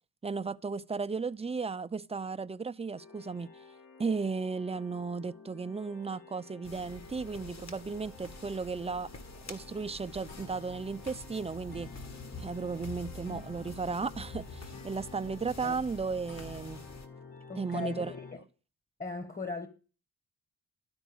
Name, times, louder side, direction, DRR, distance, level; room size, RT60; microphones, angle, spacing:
voice 1, 0.2-3.5 4.0-9.1 9.5-11.9 12.4-16.9 17.6-18.1, right 4 dB, 15° right, 0.6 m, -35 dB
sound 1, 3.0-18.3, left 4 dB, 65° left, 4.4 m, -50 dB
sound 2, 6.6-17.1, left 2 dB, 40° left, 2.1 m, -47 dB
voice 2, 17.5-18.4 19.0-19.7, left 3 dB, 20° left, 1.6 m, -38 dB
12.5 x 4.5 x 7.1 m
hypercardioid pair, 45°, 40 cm